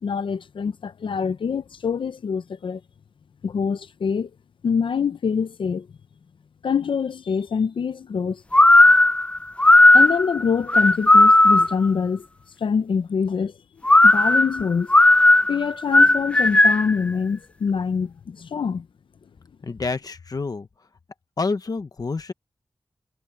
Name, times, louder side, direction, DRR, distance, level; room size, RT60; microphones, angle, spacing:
voice 1, 0.0-2.8 3.4-4.3 4.6-5.9 6.6-8.4 9.9-12.3 12.6-13.5 14.0-14.9 15.5-18.9, left 6 dB, 85° left, 0.7 m, -25 dB
sound 1, 8.5-11.9 13.8-17.0, left 2 dB, 15° left, 0.4 m, -14 dB
voice 2, 19.6-20.7 21.4-22.3, left 4 dB, 50° left, 1.1 m, -28 dB
wide cardioid pair, 120°, 8 cm